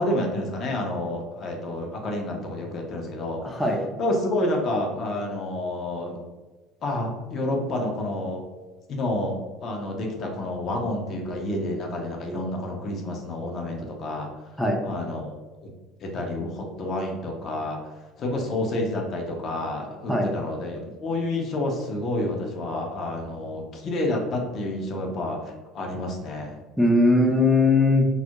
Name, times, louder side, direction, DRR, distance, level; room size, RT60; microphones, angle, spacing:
voice 1, 0.0-3.6 4.0-6.2 6.8-8.4 8.9-14.3 14.8-15.7 16.0-17.9 18.2-26.6 27.2-27.4, left 1 dB, 50° left, 1 dB, 0.6 m, -29 dB
voice 2, 3.4-3.8 14.6-14.8 20.1-20.3 26.8-28.1, left 2 dB, ahead, 0 dB, 0.5 m, -19 dB
2.3 x 2.0 x 2.8 m, 1.2 s
hypercardioid pair, 80°, 0 cm